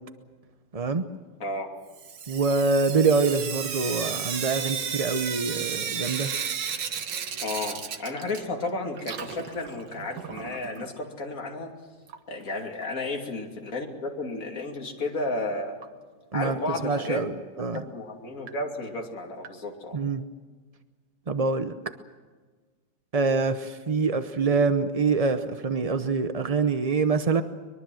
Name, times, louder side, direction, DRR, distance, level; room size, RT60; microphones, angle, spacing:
voice 1, 0.7-1.0 2.3-6.3 16.3-16.6 16.8-17.8 19.9-20.2 21.3-21.7 23.1-27.4, right 4 dB, 40° right, 9 dB, 0.5 m, -25 dB
Sink (filling or washing) / Drip, 1.9-8.7 9.0-10.9 12.1-12.2 12.5-12.6 12.8-12.9 15.8-15.9 16.4-16.5 17.1-17.2 17.8-17.9 18.5-18.6 19.4-19.5, right 7 dB, 90° right, 2.0 m, -33 dB
voice 2, 7.4-11.7 12.3-15.8 16.3-17.2 17.5-20.0, left 2 dB, 50° left, 1 dB, 3.1 m, -33 dB
23.5 x 22.5 x 7.7 m, 1.4 s
omnidirectional pair, 1.9 m